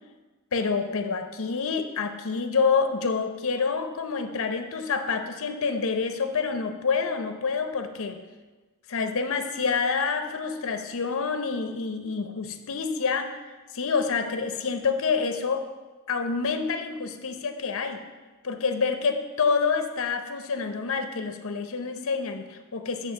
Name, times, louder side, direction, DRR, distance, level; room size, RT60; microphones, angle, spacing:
voice 1, 0.5-8.2 8.9-13.4 13.7-15.7 16.1-18.0 18.4-23.1, left 5 dB, 65° left, 7 dB, 0.7 m, -27 dB
8.5 x 3.1 x 6.3 m, 1.3 s
head